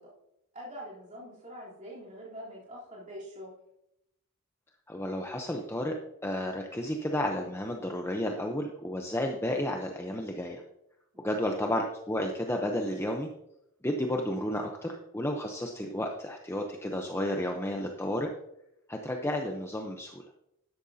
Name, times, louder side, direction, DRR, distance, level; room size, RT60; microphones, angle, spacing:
voice 1, 0.5-3.5 11.1-11.7, equal, 35° right, -7 dB, 3.4 m, -45 dB
voice 2, 4.9-5.9 6.2-10.6 11.2-13.3 13.8-18.3 18.9-20.2, left 1 dB, 10° left, 2 dB, 0.7 m, -32 dB
12.5 x 10.5 x 2.8 m, 0.84 s
head